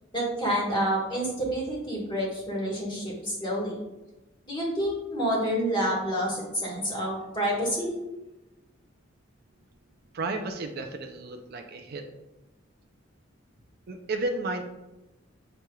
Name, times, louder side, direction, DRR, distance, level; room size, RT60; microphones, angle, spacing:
voice 1, 0.1-3.8 4.4-7.9, equal, 25° left, -4 dB, 1.4 m, -28 dB
voice 2, 10.1-12.0 13.9-14.6, right 2 dB, 55° right, 5 dB, 0.4 m, -32 dB
6.8 x 3.1 x 2.2 m, 1.0 s
head